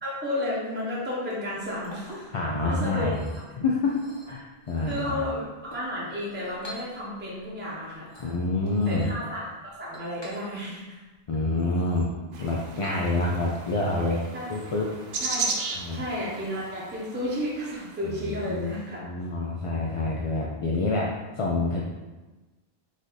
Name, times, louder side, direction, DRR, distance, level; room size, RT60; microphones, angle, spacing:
voice 1, 0.0-2.3 2.6-3.1 4.9-8.1 8.9-11.0 14.3-14.5 15.2-15.5 15.9-19.0, left 1 dB, 10° right, -6 dB, 0.9 m, -32 dB
Chink clink, 1.4-13.4, equal, 25° left, 1.1 m, -50 dB
voice 2, 2.3-3.2 3.6-4.0 4.3-5.2 8.2-9.1 11.3-12.1 12.4-14.2 14.5-14.9 15.7-16.0 18.0-21.8, left 2 dB, 45° left, -3 dB, 0.4 m, -27 dB
sound 1, 12.3-18.5, right 4 dB, 65° right, 0.8 m, -36 dB
5.0 x 2.6 x 3.9 m, 1.2 s
omnidirectional pair, 1.0 m